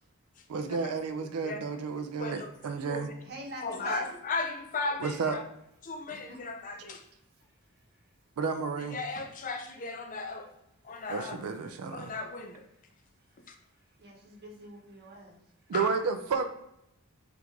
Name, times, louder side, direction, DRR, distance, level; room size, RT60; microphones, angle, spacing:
voice 1, 0.5-3.1 5.0-5.4 8.4-9.0 11.1-12.1 15.7-16.5, right 5 dB, 80° right, 8 dB, 0.4 m, -31 dB
voice 2, 2.2-2.5 2.9-3.1 3.6-5.4 5.8-7.0 8.8-10.5 10.8-11.4 11.9-12.6 13.5-13.6 15.7-15.9, left 3 dB, 35° left, 5 dB, 0.4 m, -36 dB
voice 3, 3.2-4.1 6.1-6.4 14.0-15.4, right 1 dB, 45° right, -1 dB, 0.9 m, -43 dB
4.6 x 2.5 x 3.5 m, 0.80 s
head